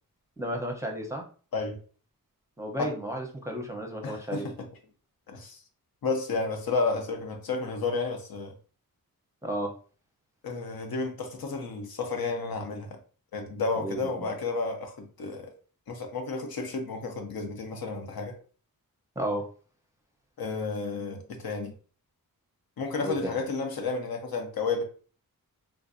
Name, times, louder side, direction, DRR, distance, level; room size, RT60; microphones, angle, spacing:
voice 1, 0.4-1.2 2.6-4.5 9.4-9.7 13.8-14.3 19.2-19.4 23.0-23.3, right 1 dB, 10° right, 0.6 m, -33 dB
voice 2, 4.0-4.7 5.3-5.6 6.0-8.5 10.4-12.9 13.3-15.5 15.9-18.4 20.4-21.7 22.8-24.8, left 3 dB, 80° left, 0.7 m, -31 dB
3.4 x 2.5 x 2.5 m
wide cardioid pair, 115°, 35 cm